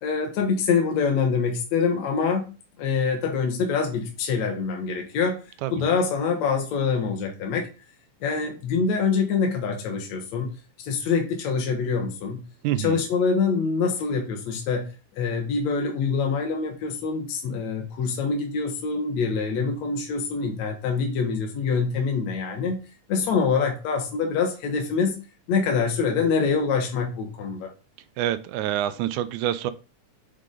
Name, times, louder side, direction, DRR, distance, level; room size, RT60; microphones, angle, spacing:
voice 1, 0.0-2.5 2.8-5.4 5.7-7.7 8.2-10.5 10.8-12.4 12.8-14.9 15.2-22.8 23.1-25.2 25.5-27.7, left 5 dB, 65° left, 2.4 m, -25 dB
voice 2, 12.6-13.0 28.2-29.7, right 12 dB, 80° right, 2.0 m, -26 dB
6.6 x 5.0 x 3.8 m
omnidirectional pair, 3.5 m